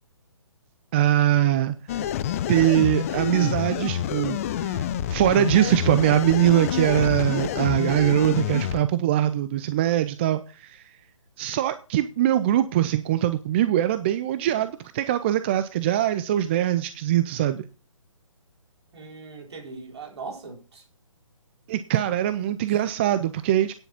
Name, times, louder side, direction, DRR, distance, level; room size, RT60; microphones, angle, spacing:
voice 1, 0.9-1.8 2.5-10.9 11.4-17.6 21.7-23.7, right 12 dB, 20° right, 0.4 m, -22 dB
sound 1, 1.9-8.8, left 11 dB, 25° left, 0.6 m, -28 dB
voice 2, 18.9-20.8 22.7-22.8, right 4 dB, 55° right, 4.1 m, -40 dB
9.8 x 7.9 x 5.8 m
figure-of-eight pair, 140°, 17 cm